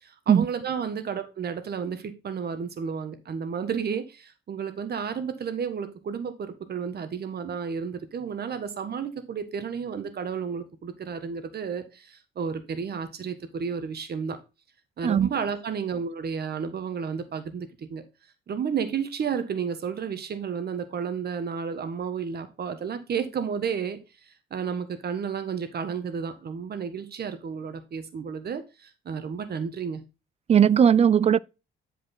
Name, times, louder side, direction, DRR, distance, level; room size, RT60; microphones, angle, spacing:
voice 1, 0.0-14.4 15.0-18.0 18.5-24.0 24.5-30.0, right 6 dB, 55° right, 1.5 m, -32 dB
voice 2, 30.5-31.4, right 8 dB, 30° right, 0.4 m, -18 dB
10.5 x 5.1 x 3.9 m
cardioid pair, 90°, 20 cm